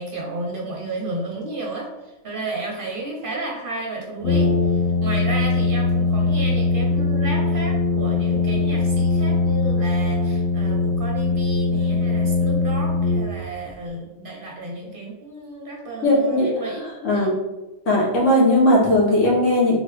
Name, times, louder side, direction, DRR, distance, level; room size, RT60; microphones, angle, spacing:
voice 1, 0.0-17.3, right 2 dB, 50° right, -1 dB, 0.8 m, -32 dB
Brass instrument, 4.2-13.7, left 3 dB, 55° left, 1.0 m, -21 dB
voice 2, 16.0-16.5 17.0-17.3 17.9-19.7, left 1 dB, 75° left, -4 dB, 1.5 m, -17 dB
3.7 x 3.5 x 3.1 m, 1.0 s
omnidirectional pair, 1.3 m